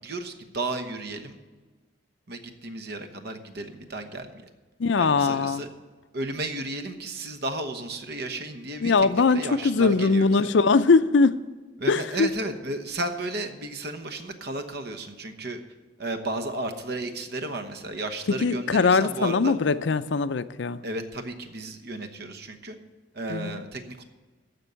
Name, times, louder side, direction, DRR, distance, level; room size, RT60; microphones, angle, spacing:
voice 1, 0.0-1.4 2.3-4.4 5.0-5.7 6.1-10.5 11.8-15.6 16.0-19.5 20.8-22.8 23.1-24.0, right 2 dB, 60° right, 7 dB, 1.1 m, -33 dB
voice 2, 4.8-5.6 8.8-11.4 11.9-12.3 18.3-20.8 23.3-23.6, left 4 dB, 70° left, 13 dB, 0.5 m, -21 dB
14.5 x 5.4 x 8.1 m, 1.3 s
head